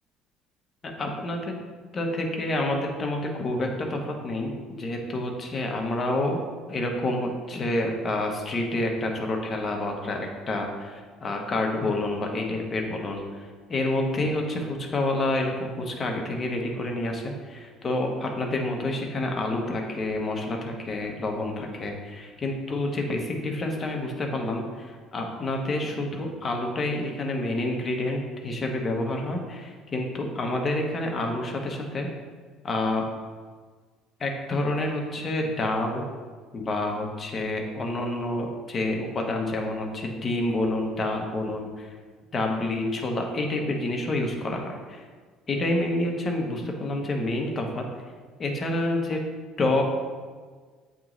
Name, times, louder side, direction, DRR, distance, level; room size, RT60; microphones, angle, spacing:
voice 1, 0.8-1.5 1.9-6.4 6.7-32.1 32.6-33.0 34.2-36.1 36.5-41.9 42.3-45.1 45.5-47.8 48.4-49.2 49.6-49.8, left 2 dB, 30° left, 1 dB, 0.9 m, -28 dB
8.4 x 3.0 x 3.8 m, 1.5 s
cardioid pair, 125°, 0 cm